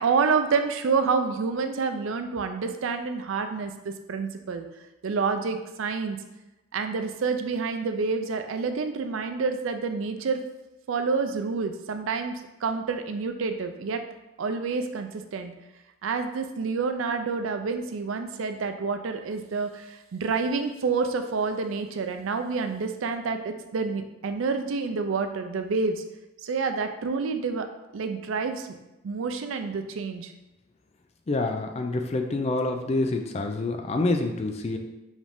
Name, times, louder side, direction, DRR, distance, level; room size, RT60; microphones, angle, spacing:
voice 1, 0.0-4.6 5.0-6.2 6.7-10.4 10.9-12.3 12.6-14.0 14.4-15.5 16.0-26.0 26.4-27.7 27.9-28.7 29.0-30.3, right 4 dB, 85° right, 7 dB, 0.4 m, -28 dB
voice 2, 31.3-34.8, left 2 dB, 30° left, 4 dB, 0.3 m, -27 dB
4.9 x 2.6 x 3.5 m, 0.98 s
head